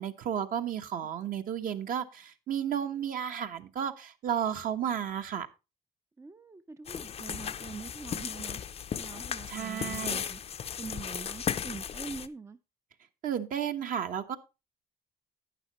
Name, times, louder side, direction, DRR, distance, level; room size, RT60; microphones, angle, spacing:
voice 1, 0.0-5.5 9.5-10.2 13.2-14.4, right 9 dB, 55° right, 1.2 m, -33 dB
voice 2, 6.2-8.6 9.0-10.4 10.8-12.6, right 4 dB, 15° right, 0.5 m, -44 dB
sound 1, 6.9-12.3, left 8 dB, 35° left, 0.6 m, -36 dB
11.5 x 9.3 x 3.0 m
cardioid pair, 110°, 17 cm